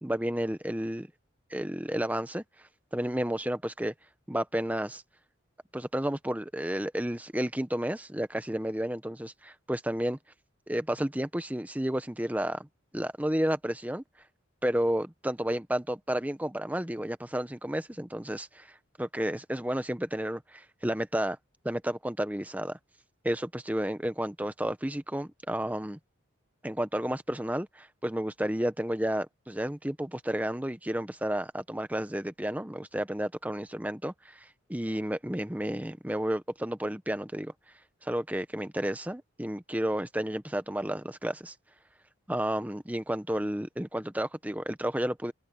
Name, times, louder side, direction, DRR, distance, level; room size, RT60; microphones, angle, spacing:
voice 1, 0.0-1.1 1.5-2.4 2.9-3.9 4.3-5.0 5.7-10.2 10.7-12.7 12.9-14.0 14.6-18.7 19.0-21.4 21.6-22.8 23.2-26.0 26.6-37.5 38.0-41.5 42.3-45.3, right 1 dB, 5° right, 0.9 m, -31 dB
open air
head